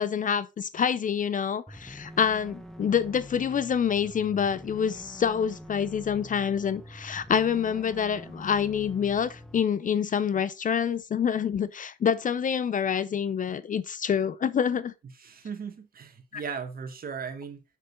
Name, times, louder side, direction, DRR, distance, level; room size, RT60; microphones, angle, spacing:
voice 1, 0.0-14.9 16.3-16.4, left 7 dB, 40° left, 0.6 m, -27 dB
sound 1, 1.7-9.6, equal, ahead, 1.0 m, -45 dB
voice 2, 15.0-17.6, right 6 dB, 50° right, 1.7 m, -37 dB
6.5 x 6.4 x 3.9 m
cardioid pair, 90°, 20 cm